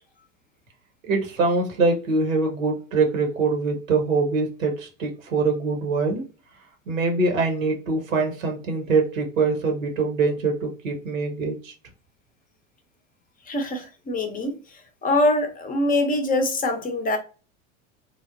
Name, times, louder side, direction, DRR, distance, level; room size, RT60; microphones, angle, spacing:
voice 1, 1.0-6.2 6.9-11.7, right 3 dB, 85° right, 1.0 m, -23 dB
voice 2, 13.5-14.6 15.0-17.2, left 2 dB, 20° left, 0.6 m, -23 dB
3.2 x 2.1 x 2.5 m
hypercardioid pair, 85°, 40 cm